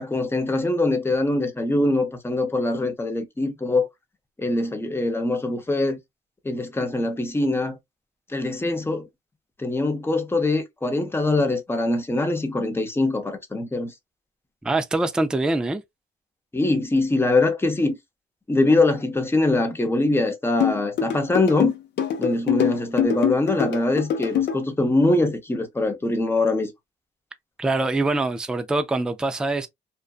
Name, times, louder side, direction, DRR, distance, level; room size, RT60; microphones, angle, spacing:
voice 1, 0.0-3.9 4.4-6.0 6.4-7.8 8.3-9.1 9.6-13.9 16.5-18.0 18.5-21.7 22.2-26.7, left 2 dB, 10° left, 0.7 m, -23 dB
voice 2, 14.6-15.8 27.6-29.7, right 2 dB, 5° right, 0.3 m, -24 dB
sound 1, 20.6-24.6, left 9 dB, 60° left, 0.7 m, -24 dB
2.5 x 2.2 x 2.3 m
cardioid pair, 90°, 20 cm